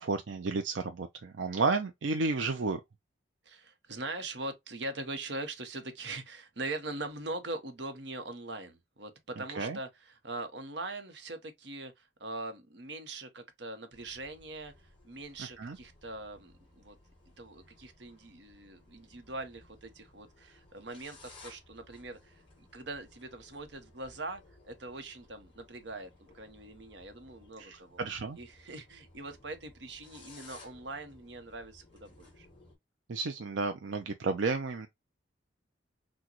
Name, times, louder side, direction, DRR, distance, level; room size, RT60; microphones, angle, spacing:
voice 1, 0.0-2.8 9.5-9.8 15.4-15.8 27.6-28.4 33.1-34.9, right 3 dB, 85° right, 0.5 m, -32 dB
voice 2, 3.4-14.7 15.0-17.0 17.4-28.0 28.4-32.5, right 2 dB, 70° right, 1.0 m, -42 dB
sound 1, 13.9-32.8, left 2 dB, 30° left, 2.4 m, -58 dB
6.1 x 2.3 x 2.9 m
head